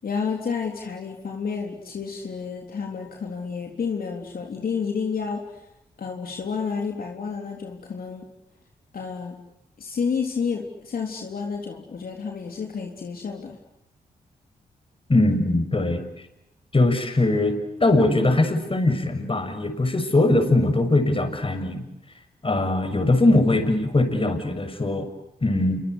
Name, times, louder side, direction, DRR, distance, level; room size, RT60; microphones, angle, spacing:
voice 1, 0.0-5.5 6.0-8.3 8.9-9.4 9.8-13.6, left 5 dB, 65° left, 1 dB, 3.7 m, -30 dB
voice 2, 15.1-16.0 16.7-21.8 22.4-25.1 25.4-25.8, left 2 dB, 35° left, 7 dB, 6.6 m, -21 dB
28.0 x 25.0 x 8.3 m, 0.88 s
cardioid pair, 60°, 16 cm